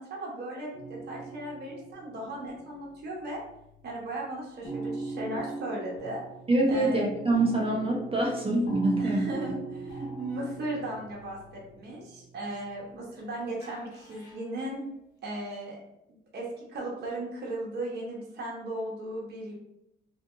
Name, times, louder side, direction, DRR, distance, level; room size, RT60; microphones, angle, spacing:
voice 1, 0.0-3.4 3.8-6.2 6.7-7.1 9.0-14.8 15.2-15.8 16.3-19.5, right 1 dB, 55° right, -3 dB, 1.0 m, -36 dB
sound 1, 0.7-3.6 3.9-4.1 4.6-13.2 13.6-14.6, right 3 dB, 65° left, 1.5 m, -39 dB
voice 2, 6.5-9.3 10.0-10.1, right 2 dB, 30° right, -2 dB, 0.8 m, -25 dB
2.8 x 2.4 x 2.4 m, 0.81 s
cardioid pair, 90°, 20 cm